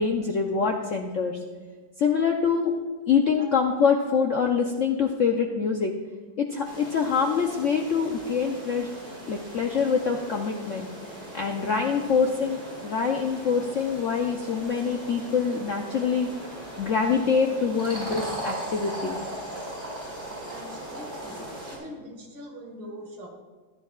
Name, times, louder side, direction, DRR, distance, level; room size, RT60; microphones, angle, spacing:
voice 1, 0.0-1.4 2.0-2.7 3.1-5.9 6.4-8.9 9.3-10.9 11.3-16.3 16.8-19.2, left 6 dB, 65° left, 2 dB, 0.8 m, -25 dB
sound 1, 6.6-21.8, right 1 dB, 20° right, 4.0 m, -39 dB
voice 2, 20.4-23.3, equal, 70° right, 1 dB, 2.5 m, -43 dB
14.5 x 11.5 x 2.4 m, 1.4 s
omnidirectional pair, 2.1 m